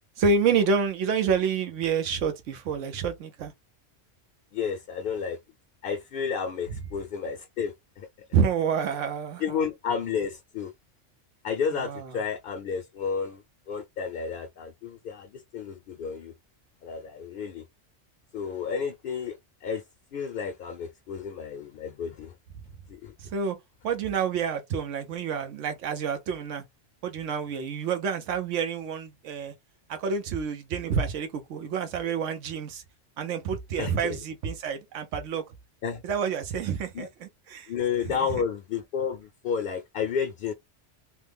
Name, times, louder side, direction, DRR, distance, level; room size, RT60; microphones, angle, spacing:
voice 1, 0.2-3.5 8.3-9.6 11.7-12.1 23.2-23.6 23.8-26.6 27.0-29.5 29.9-32.8 33.2-35.5 36.0-37.7 38.1-38.3, right 6 dB, 85° right, 1.0 m, -28 dB
voice 2, 4.5-5.4 5.8-8.1 9.4-10.7 11.4-13.4 13.7-16.3 16.8-17.6 18.3-19.8 20.1-22.3 22.9-23.1 33.8-34.2 35.8-36.0 36.9-37.1 37.7-40.5, left 6 dB, 60° left, 0.6 m, -31 dB
3.1 x 2.1 x 3.3 m
omnidirectional pair, 1.2 m